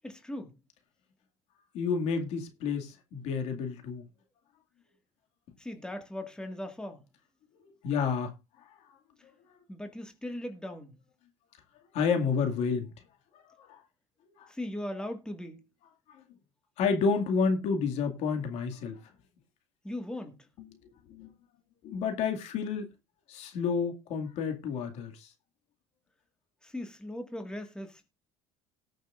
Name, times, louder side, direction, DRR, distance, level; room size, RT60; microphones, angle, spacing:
voice 1, 0.0-0.6 5.6-7.1 9.7-11.0 14.5-15.6 19.8-20.5 26.6-28.1, left 1 dB, 5° left, 1.8 m, -39 dB
voice 2, 1.7-4.1 7.8-8.7 11.9-12.9 13.6-13.8 14.4-14.5 16.1-16.2 16.8-19.0 20.6-20.7 21.1-21.3 21.8-22.9 23.3-25.3, left 5 dB, 65° left, 2.2 m, -30 dB
18.5 x 6.5 x 2.5 m
supercardioid pair, 105°, 12 cm